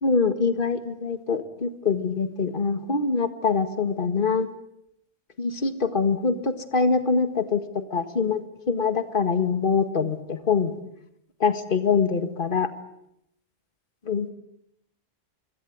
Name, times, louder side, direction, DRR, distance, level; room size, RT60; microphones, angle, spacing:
voice 1, 0.0-4.5 5.4-10.7 11.4-12.7 14.1-14.3, left 5 dB, 55° left, 9 dB, 1.9 m, -24 dB
26.0 x 22.5 x 9.5 m, 0.79 s
omnidirectional pair, 1.1 m